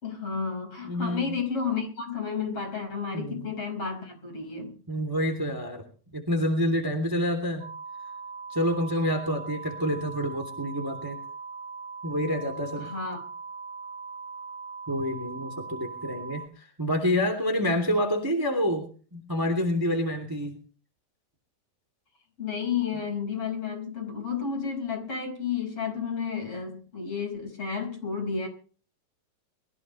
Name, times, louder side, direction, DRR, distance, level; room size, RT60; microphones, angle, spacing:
voice 1, 0.0-4.8 12.8-13.3 22.4-28.5, left 6 dB, 40° left, 4 dB, 6.2 m, -32 dB
voice 2, 0.8-1.3 3.1-3.5 4.9-5.8 6.1-7.6 8.5-11.2 12.0-12.9 14.9-20.6, equal, 5° right, 5 dB, 2.2 m, -28 dB
sound 1, 7.6-16.5, right 4 dB, 85° right, 4.3 m, -40 dB
23.5 x 15.5 x 3.2 m, 0.40 s
omnidirectional pair, 3.9 m